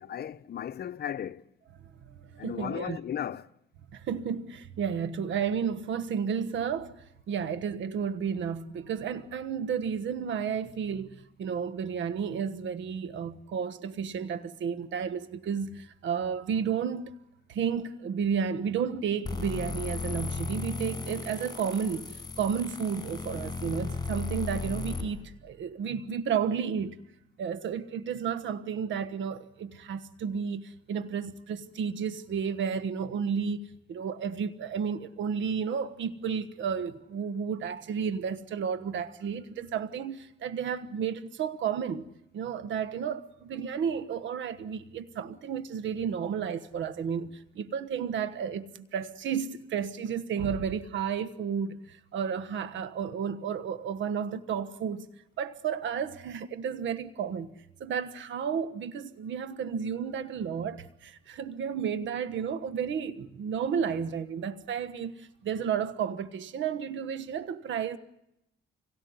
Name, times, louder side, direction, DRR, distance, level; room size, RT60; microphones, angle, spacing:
voice 1, 0.0-1.4 2.4-3.5, left 9 dB, 55° left, 0.9 m, -35 dB
voice 2, 2.1-3.0 3.9-17.1 17.5-27.0 27.4-55.1 55.4-57.5 57.8-68.0, right 7 dB, 70° right, 1.3 m, -32 dB
sound 1, 19.3-25.0, left 4 dB, 20° left, 6.8 m, -35 dB
26.0 x 17.5 x 9.5 m
cardioid pair, 90°, 20 cm